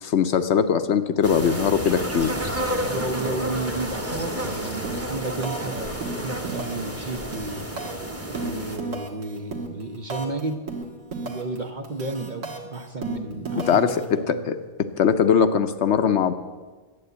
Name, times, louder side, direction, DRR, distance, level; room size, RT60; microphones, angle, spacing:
voice 1, 0.0-2.3 13.6-14.6 15.0-16.3, left 7 dB, 65° left, 10 dB, 0.9 m, -21 dB
sound 1, 1.2-8.8, equal, 10° right, 1.1 m, -30 dB
voice 2, 2.7-7.7 8.3-10.6 11.2-14.5, right 2 dB, 45° right, 6 dB, 0.8 m, -32 dB
sound 2, 4.8-5.1 5.4-5.7 6.0-6.9 7.2-10.4 10.7-11.6 11.8-14.0, right 3 dB, 75° right, 1.9 m, -33 dB
12.0 x 9.0 x 8.0 m, 1.4 s
omnidirectional pair, 1.4 m